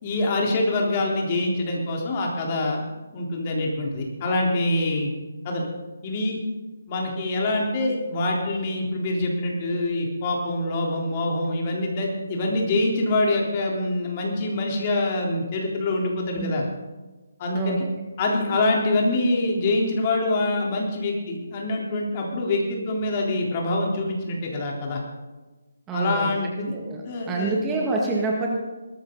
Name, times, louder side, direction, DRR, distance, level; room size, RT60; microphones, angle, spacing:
voice 1, 0.0-2.8 3.1-5.1 5.4-5.7 6.0-6.4 6.9-16.6 17.4-17.9 18.2-25.0 25.9-26.7 27.1-27.6, left 2 dB, 30° left, -1 dB, 3.8 m, -25 dB
voice 2, 17.5-17.9 25.9-26.4 26.7-28.6, right 3 dB, 15° right, -2 dB, 1.9 m, -27 dB
19.0 x 14.5 x 4.0 m, 1.2 s
figure-of-eight pair, 145°, 0 cm